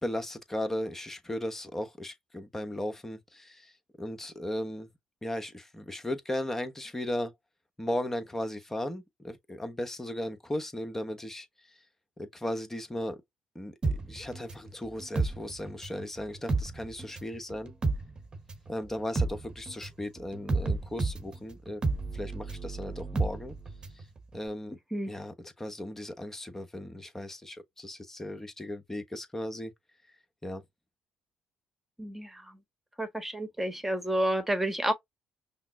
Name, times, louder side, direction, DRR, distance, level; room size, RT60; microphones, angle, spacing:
voice 1, 0.0-3.7 4.0-4.9 5.2-7.3 7.8-11.5 12.2-13.2 13.5-17.7 18.7-21.8 22.1-23.6 23.9-24.0 24.3-24.8 25.1-29.7 30.4-30.6, left 1 dB, 15° left, 1.1 m, -36 dB
sound 1, 13.8-16.0 16.3-24.0 24.3-24.4, right 3 dB, 35° right, 1.1 m, -31 dB
voice 2, 32.0-32.6 33.0-34.9, right 1 dB, 10° right, 1.3 m, -30 dB
5.7 x 2.0 x 2.6 m
hypercardioid pair, 55°, 2 cm